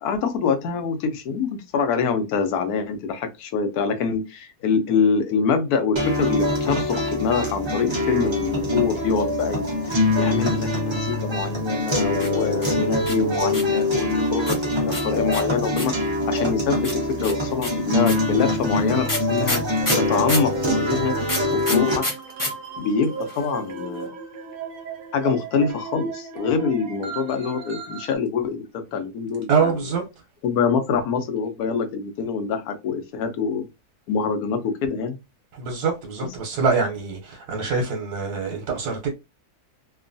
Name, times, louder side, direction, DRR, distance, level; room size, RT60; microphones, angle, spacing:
voice 1, 0.0-15.9 16.3-19.6 19.9-20.5 20.8-21.2 21.5-22.0 22.8-24.1 25.1-29.9 30.4-33.7 34.1-35.2, left 5 dB, 80° left, 1.1 m, -25 dB
sound 1, 6.0-22.0, left 1 dB, 25° right, 0.7 m, -24 dB
sound 2, 12.1-13.8 14.5-16.1 16.8-20.5 21.2-22.5 22.8-22.9 23.0-23.5, left 1 dB, 25° left, 0.4 m, -28 dB
sound 3, 19.8-28.2, right 6 dB, 70° right, 1.2 m, -35 dB
voice 2, 29.5-30.0 35.6-39.1, right 5 dB, 90° right, 1.2 m, -24 dB
2.9 x 2.2 x 2.5 m
omnidirectional pair, 1.6 m